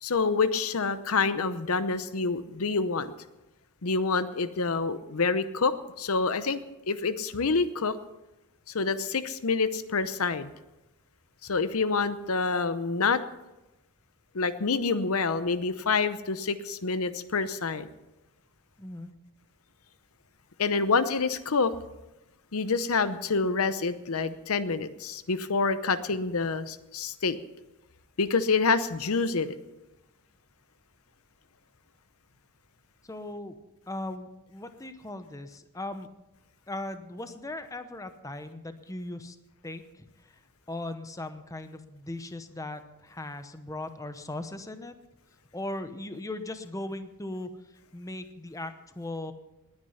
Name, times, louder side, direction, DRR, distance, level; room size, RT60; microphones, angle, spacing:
voice 1, 0.0-3.1 3.8-6.6 6.9-7.9 8.7-10.5 11.4-13.2 14.3-17.9 20.6-21.7 22.5-27.4 28.2-29.5, left 4 dB, 70° left, 13 dB, 0.8 m, -27 dB
voice 2, 18.8-19.1 33.0-33.6 33.9-36.1 36.7-39.4 39.6-40.4 40.7-45.0 45.5-49.3, left 2 dB, 15° left, 9 dB, 0.8 m, -38 dB
19.5 x 9.8 x 5.7 m, 1.0 s
head